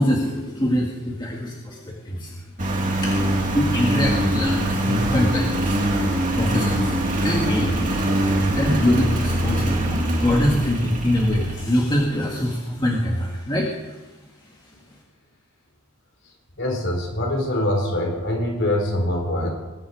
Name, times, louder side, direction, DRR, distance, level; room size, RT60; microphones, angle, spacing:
voice 1, 0.0-2.3 3.0-5.8 6.1-8.0 8.4-13.9, left 1 dB, 20° left, -2 dB, 1.8 m, -24 dB
Engine, 2.6-12.0, right 1 dB, 35° right, 2.5 m, -23 dB
voice 2, 16.6-19.5, left 1 dB, 55° left, 1 dB, 4.4 m, -24 dB
21.0 x 10.5 x 4.8 m, 1.2 s
head